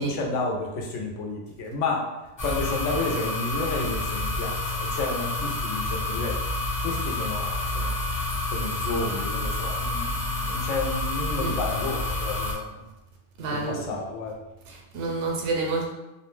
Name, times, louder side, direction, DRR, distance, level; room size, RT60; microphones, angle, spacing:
voice 1, 0.0-2.1 2.4-6.4 6.8-8.0 8.5-12.9 13.5-14.4, left 3 dB, 85° left, 0 dB, 0.9 m, -31 dB
sound 1, 2.4-12.5, left 2 dB, 30° left, 0.6 m, -29 dB
voice 2, 13.4-13.9 14.7-15.9, right 3 dB, 80° right, 0 dB, 0.9 m, -29 dB
2.4 x 2.1 x 3.1 m, 1.0 s
omnidirectional pair, 1.2 m